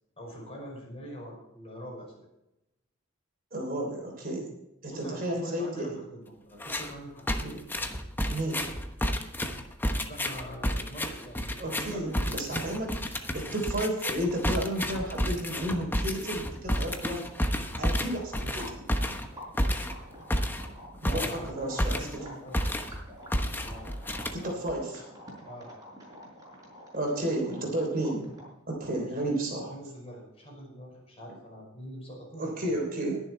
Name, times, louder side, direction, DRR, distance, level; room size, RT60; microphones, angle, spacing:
voice 1, 0.2-2.2 4.9-6.2 6.5-7.4 10.0-12.7 21.0-23.0 23.6-24.0 25.5-25.7 28.9-32.8, equal, 30° left, -2 dB, 5.5 m, -43 dB
voice 2, 3.5-4.5 4.8-6.0 7.4-7.6 8.3-8.6 11.6-17.3 17.8-18.8 21.0-22.3 24.3-25.0 26.9-28.3 28.7-29.8 32.4-33.2, right 1 dB, 45° right, 0 dB, 3.4 m, -32 dB
sound 1, 6.6-6.9 7.3-22.3 22.5-23.0 23.3-24.7, equal, 10° left, 1.0 m, -31 dB
sound 2, 16.9-28.6, equal, 20° right, 5.1 m, -48 dB
21.0 x 7.1 x 4.5 m, 0.88 s
head